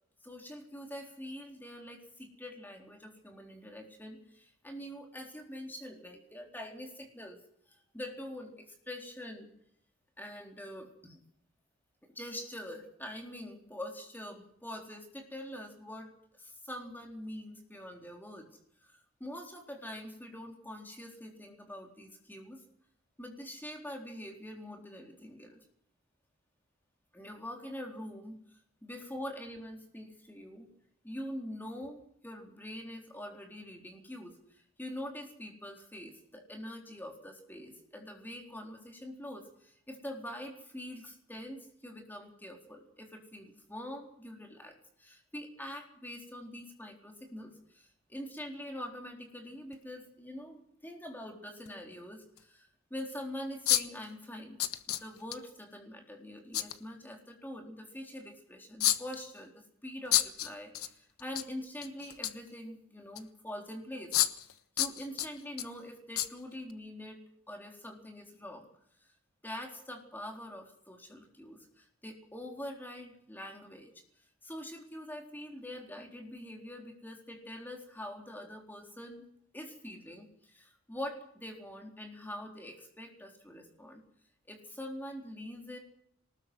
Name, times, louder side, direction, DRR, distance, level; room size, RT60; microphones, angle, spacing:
voice 1, 0.2-7.4 7.7-9.5 10.2-11.2 12.0-16.1 16.4-18.5 18.8-22.6 23.2-25.6 27.1-28.4 28.8-30.7 31.0-54.6 54.9-64.2 64.8-67.2 67.5-68.7 69.4-73.9 74.4-79.2 79.5-84.0 84.5-85.8, left 1 dB, 10° left, 2 dB, 3.9 m, -44 dB
sound 1, 49.7-49.8 51.7-51.8 52.4-52.5 53.7-54.0 54.6-55.4 56.5-56.8 58.8-59.3 60.1-60.9 61.2-61.4 61.8-62.5 63.2-63.3 64.1-64.5 64.8-65.7 66.2-66.3 66.7-66.8, left 13 dB, 80° left, 1.3 m, -29 dB
23.0 x 20.0 x 6.3 m, 0.70 s
head